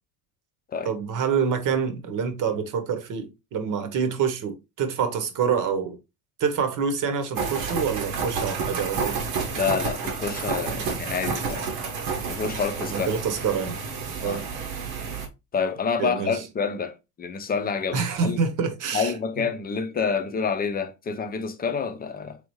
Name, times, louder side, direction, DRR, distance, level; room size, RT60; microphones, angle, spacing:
voice 1, 0.8-6.0 6.4-9.2 12.9-13.7 14.2-14.4 16.0-16.4 17.9-19.1, right 6 dB, 45° right, 1.1 m, -26 dB
sound 1, 7.3-15.3, right 5 dB, 75° right, 1.3 m, -30 dB
voice 2, 9.5-11.7 12.3-13.1 14.2-14.4 15.5-18.4 18.9-22.4, left 6 dB, 20° left, 0.7 m, -28 dB
3.5 x 3.4 x 3.1 m
supercardioid pair, 90°, 42 cm